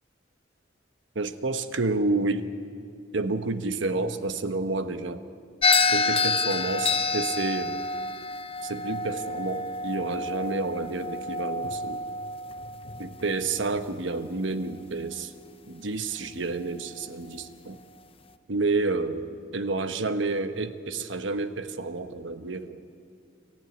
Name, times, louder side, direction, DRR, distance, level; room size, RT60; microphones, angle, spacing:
voice 1, 1.1-2.5 3.1-5.2 5.9-7.8 8.6-12.0 13.0-15.3 15.7-17.8 18.5-22.8, right 3 dB, 85° right, 10 dB, 1.2 m, -29 dB
sound 1, 5.6-14.0, left 3 dB, 30° left, 0.7 m, -28 dB
27.0 x 15.0 x 9.6 m, 2.4 s
head